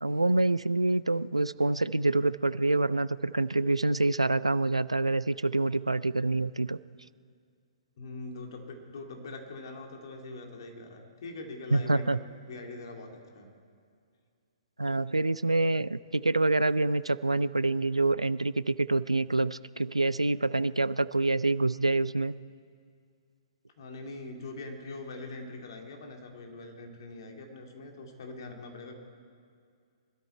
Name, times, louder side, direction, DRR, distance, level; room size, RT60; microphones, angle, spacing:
voice 1, 0.0-6.8 11.7-12.2 14.8-22.3, right 2 dB, 80° right, 18 dB, 0.4 m, -26 dB
voice 2, 8.0-13.5 23.8-28.9, left 2 dB, 50° left, 3 dB, 2.6 m, -43 dB
24.0 x 13.0 x 4.5 m, 2.2 s
figure-of-eight pair, 120°, 3 cm